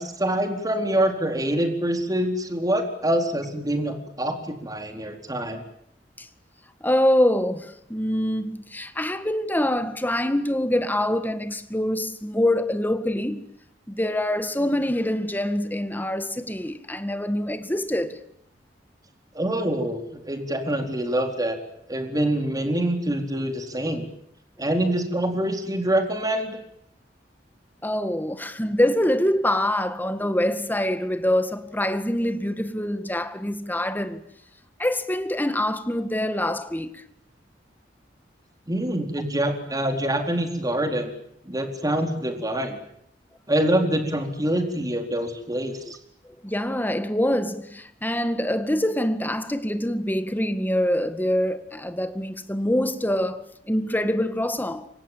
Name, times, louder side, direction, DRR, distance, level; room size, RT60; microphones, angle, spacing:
voice 1, 0.0-5.6 19.3-21.6 21.9-24.1 24.6-26.6 38.7-41.1 41.5-42.8 43.5-46.0, right 1 dB, 20° right, 4.2 m, -25 dB
voice 2, 6.8-13.4 13.9-18.2 27.8-34.2 34.8-37.0 46.4-54.9, left 1 dB, 10° left, 1.9 m, -25 dB
29.5 x 25.5 x 7.5 m
head